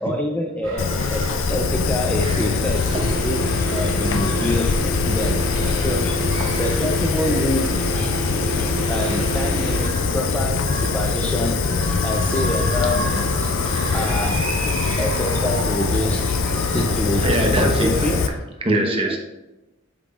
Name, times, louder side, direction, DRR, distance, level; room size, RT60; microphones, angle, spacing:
voice 1, 0.0-2.9 3.2-5.4 5.7-17.3 17.8-18.2, left 1 dB, 5° left, 1 dB, 0.5 m, -27 dB
sound 1, 0.6-18.3, right 2 dB, 90° right, 2.4 m, -33 dB
Fire, 0.8-18.3, left 4 dB, 80° left, 0.5 m, -23 dB
sound 2, 2.9-10.0, right 3 dB, 60° left, 2.0 m, -30 dB
voice 2, 17.2-18.2 18.6-19.2, right 1 dB, 30° right, 1 dB, 1.1 m, -22 dB
8.0 x 5.9 x 2.4 m, 1.0 s
head